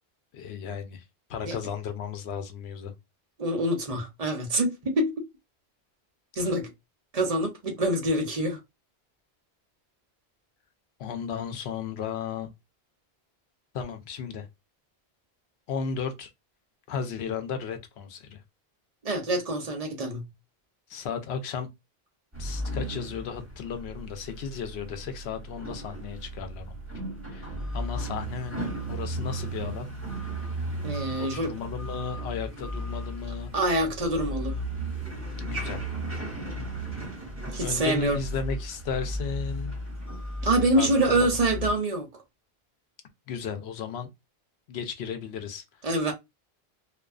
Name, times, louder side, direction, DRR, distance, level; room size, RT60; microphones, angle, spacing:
voice 1, 0.3-1.0 1.3-2.9 11.0-12.5 13.7-14.5 15.7-16.3 16.9-18.4 20.9-21.7 22.4-26.8 27.3-29.9 31.2-33.5 35.5-35.8 37.6-39.7 40.8-41.3 43.3-44.1 44.7-45.6, left 6 dB, 85° left, 0.8 m, -34 dB
voice 2, 3.4-5.2 6.4-6.7 7.1-8.6 19.0-20.3 30.8-31.5 33.5-34.6 37.5-38.2 40.4-42.1 45.8-46.1, right 1 dB, 45° right, 0.6 m, -26 dB
sound 1, 22.3-41.7, right 1 dB, 15° right, 1.2 m, -35 dB
2.3 x 2.2 x 2.3 m
omnidirectional pair, 1.1 m